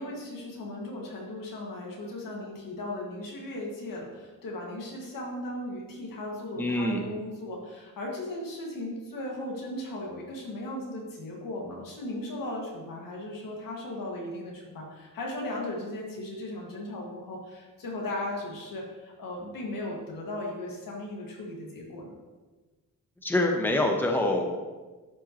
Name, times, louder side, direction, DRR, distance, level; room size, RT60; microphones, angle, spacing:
voice 1, 0.0-22.1, left 1 dB, 85° left, -2 dB, 2.1 m, -37 dB
voice 2, 6.6-7.0 23.2-24.5, left 1 dB, 5° left, 2 dB, 1.0 m, -25 dB
11.5 x 5.6 x 3.1 m, 1.3 s
cardioid pair, 105°, 33 cm